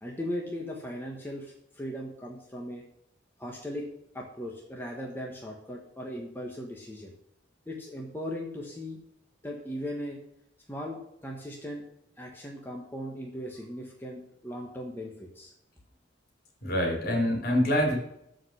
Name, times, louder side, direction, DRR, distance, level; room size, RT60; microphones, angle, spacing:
voice 1, 0.0-2.8 3.4-3.9 4.1-7.1 7.7-9.0 9.4-10.2 10.7-11.9 12.2-15.5, equal, 10° left, -1 dB, 1.3 m, -38 dB
voice 2, 16.6-18.0, left 1 dB, 50° left, 0 dB, 3.2 m, -25 dB
13.0 x 5.1 x 5.7 m, 0.77 s
head